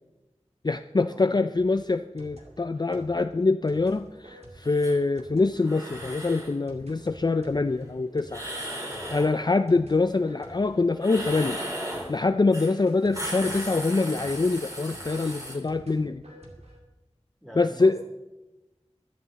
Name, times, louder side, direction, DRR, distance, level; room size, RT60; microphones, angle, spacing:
voice 1, 0.6-8.4 9.1-11.6 11.9-16.2 17.6-18.0, left 3 dB, 40° left, 10 dB, 0.4 m, -24 dB
sound 1, 1.6-12.4 12.9-16.8, right 1 dB, 65° right, 2.7 m, -51 dB
sound 2, 4.6-4.9 5.6-6.5 8.3-9.3 11.0-12.1 12.5-12.7 13.0-15.5, equal, 30° right, 4.0 m, -36 dB
voice 2, 9.2-9.5 17.4-18.0, equal, 5° right, -1 dB, 3.4 m, -44 dB
14.5 x 12.0 x 4.1 m, 1.1 s
wide cardioid pair, 50°, 12 cm